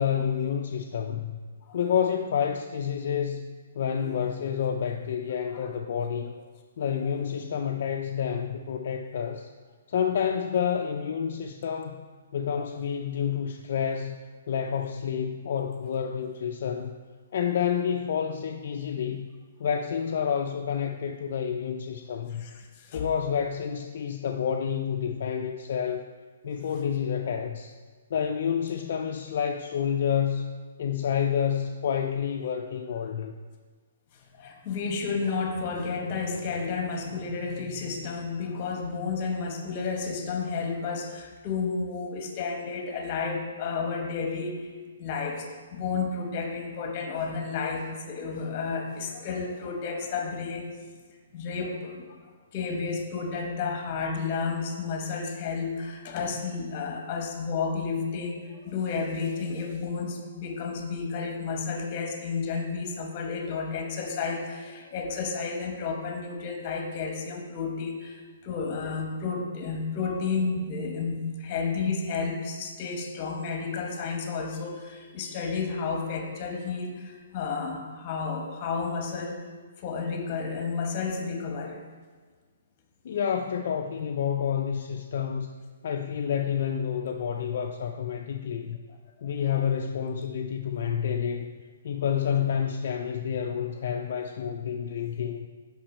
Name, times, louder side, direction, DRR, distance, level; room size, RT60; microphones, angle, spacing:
voice 1, 0.0-1.4 1.7-3.5 3.7-6.3 6.8-9.5 9.9-12.1 12.3-14.2 14.5-16.9 17.3-19.3 19.6-22.4 22.9-26.1 26.4-27.7 28.1-30.5 30.8-33.3 83.0-85.5 85.8-88.8 89.2-91.5 91.8-95.5, left 8 dB, 55° left, 3 dB, 0.3 m, -29 dB
voice 2, 3.9-4.3 5.5-5.6 6.8-6.9 12.6-12.7 22.4-23.0 34.1-44.7 45.0-50.8 51.3-52.0 52.5-79.4 79.8-81.8 92.2-92.3, left 5 dB, 35° left, 3 dB, 1.0 m, -32 dB
5.9 x 5.3 x 4.2 m, 1.5 s
hypercardioid pair, 150°, 0 cm